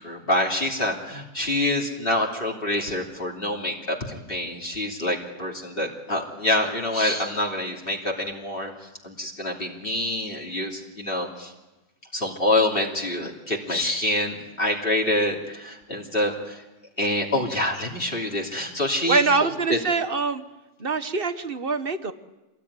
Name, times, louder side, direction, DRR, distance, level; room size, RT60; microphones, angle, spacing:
voice 1, 0.0-8.7 9.0-11.5 12.1-16.6 17.0-19.8, left 1 dB, 35° left, -1 dB, 3.1 m, -26 dB
voice 2, 19.1-20.4 20.8-22.1, right 4 dB, 40° right, 11 dB, 1.4 m, -24 dB
27.0 x 20.0 x 9.8 m, 1.1 s
omnidirectional pair, 1.6 m